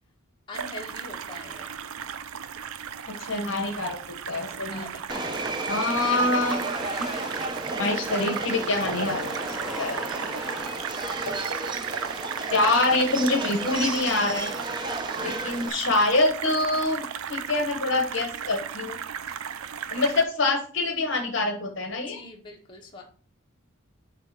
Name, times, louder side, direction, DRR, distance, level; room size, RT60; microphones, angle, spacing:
voice 1, 0.5-1.8 4.6-6.0 22.1-23.0, left 2 dB, 25° left, 1.5 m, -43 dB
sound 1, 0.5-20.2, right 8 dB, 80° right, 0.5 m, -35 dB
voice 2, 3.1-4.0 4.3-4.8 5.6-6.8 7.8-9.3 9.8-10.0 11.3-11.4 12.5-14.5 15.2-19.0 19.9-22.2, left 2 dB, 60° left, 1.1 m, -25 dB
Subway metro underground, 5.1-15.7, right 2 dB, 20° right, 0.6 m, -33 dB
sound 2, 6.4-8.2 8.6-13.3, left 1 dB, 5° right, 1.0 m, -41 dB
7.9 x 2.8 x 5.8 m
head